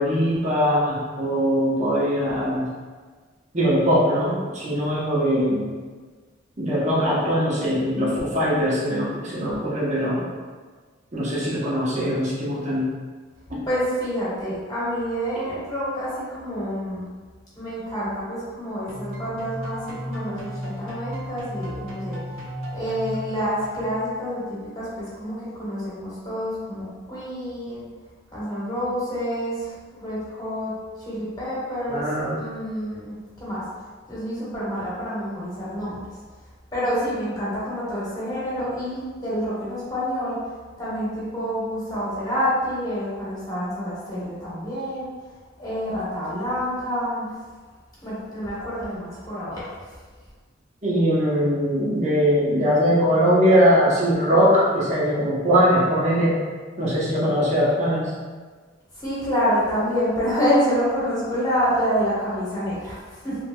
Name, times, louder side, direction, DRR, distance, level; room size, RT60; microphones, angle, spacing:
voice 1, 0.0-2.7 3.5-5.6 6.6-10.3 11.1-12.9 13.5-13.6 31.9-32.4 50.8-56.4 56.8-58.1, equal, 35° right, -7 dB, 0.7 m, -21 dB
voice 2, 13.7-17.0 17.6-22.2 22.7-27.8 28.3-30.7 31.0-32.0 32.3-33.6 34.1-36.1 36.7-40.4 40.8-45.1 45.6-47.3 48.0-49.7 59.0-63.4, equal, 20° left, -10 dB, 1.2 m, -27 dB
sound 1, 18.9-24.1, equal, 85° right, 0.6 m, -34 dB
3.2 x 2.9 x 2.2 m, 1.5 s
head